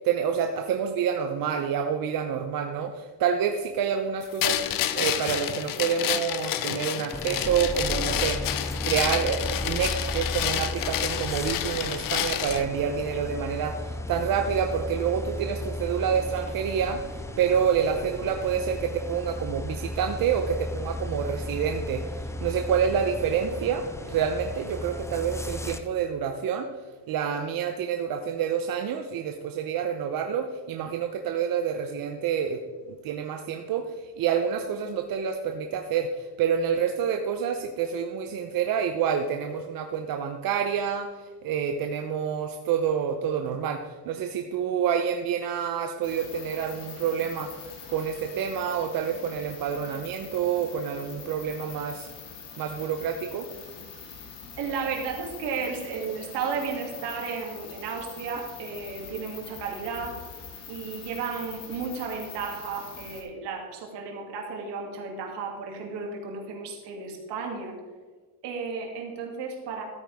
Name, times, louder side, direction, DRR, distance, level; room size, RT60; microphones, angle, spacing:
voice 1, 0.0-4.6 5.0-8.5 8.8-26.7 27.1-32.6 33.0-47.5 47.9-52.1 52.6-53.5, right 7 dB, 55° right, 5 dB, 0.8 m, -28 dB
sound 1, 4.4-12.6, left 11 dB, 50° left, 0.7 m, -29 dB
sound 2, 7.1-25.8, left 1 dB, 5° left, 0.4 m, -35 dB
sound 3, 46.0-63.2, left 6 dB, 75° left, 3.1 m, -44 dB
voice 2, 54.6-60.2 60.7-67.8 68.4-69.8, right 5 dB, 70° right, 1 dB, 2.7 m, -33 dB
13.5 x 8.9 x 3.6 m, 1.5 s
cardioid pair, 155°, 42 cm